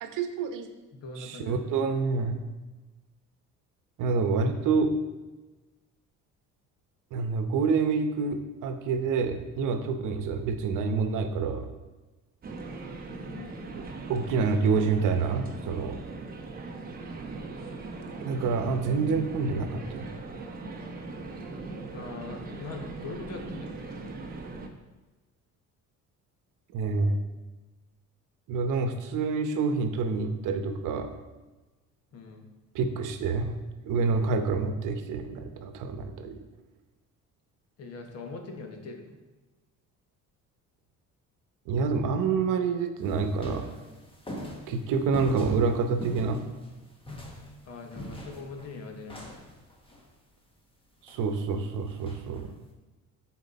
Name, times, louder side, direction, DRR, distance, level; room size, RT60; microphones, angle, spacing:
voice 1, 0.0-0.7 1.2-2.4 4.0-4.9 7.1-11.7 14.1-16.0 18.2-20.1 26.7-27.2 28.5-31.1 32.7-33.6 33.9-36.4 41.7-43.7 44.7-46.4 51.0-52.5, right 4 dB, 70° right, 7 dB, 0.9 m, -27 dB
voice 2, 0.9-1.6 13.3-13.6 21.9-24.0 32.1-32.5 37.8-39.2 47.6-49.4, left 3 dB, 50° left, 3 dB, 1.2 m, -42 dB
sound 1, 12.4-24.7, right 3 dB, 30° right, 0.8 m, -40 dB
sound 2, 43.0-50.1 51.1-51.2 51.6-51.7 51.9-52.5, left 1 dB, 15° left, 1.1 m, -42 dB
11.0 x 4.4 x 4.1 m, 1.2 s
cardioid pair, 145°, 32 cm